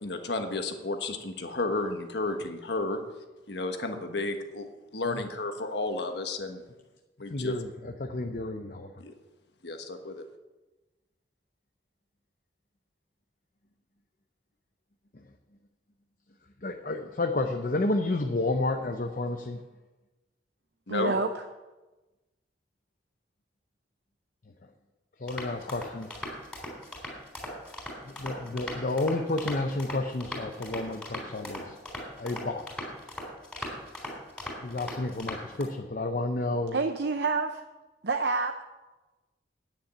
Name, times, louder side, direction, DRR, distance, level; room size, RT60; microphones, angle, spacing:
voice 1, 0.0-3.0 3.5-4.7 4.9-6.6 7.2-7.5 9.0-9.1 9.6-10.2 20.9-21.1, left 2 dB, 70° left, 6 dB, 1.3 m, -32 dB
voice 2, 7.3-8.9 16.6-19.6 25.2-26.2 28.1-31.8 32.2-32.7 34.6-36.8, left 2 dB, 50° left, 5 dB, 0.7 m, -31 dB
voice 3, 20.9-21.4 36.7-37.6 38.0-38.6, right 3 dB, 65° right, 6 dB, 0.6 m, -28 dB
sound 1, 25.3-35.6, left 1 dB, 5° left, 3.5 m, -39 dB
9.3 x 7.2 x 9.1 m, 1.1 s
head